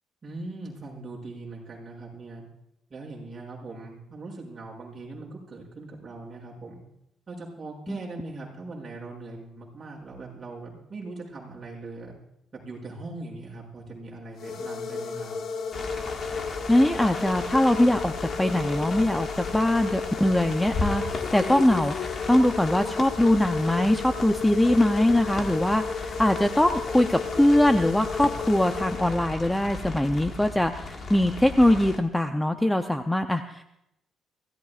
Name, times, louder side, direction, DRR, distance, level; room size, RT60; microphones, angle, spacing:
voice 1, 0.2-2.4 2.9-6.8 7.3-12.1 12.5-15.3, right 2 dB, 30° right, -4 dB, 6.7 m, -40 dB
sound 1, 14.3-29.6, left 5 dB, 60° left, 1.3 m, -33 dB
sound 2, 15.7-32.0, left 3 dB, 40° left, 1.8 m, -36 dB
voice 2, 16.7-33.6, left 1 dB, 5° left, 6 dB, 0.6 m, -22 dB
25.0 x 16.5 x 2.5 m, 0.81 s
cardioid pair, 125°, 0 cm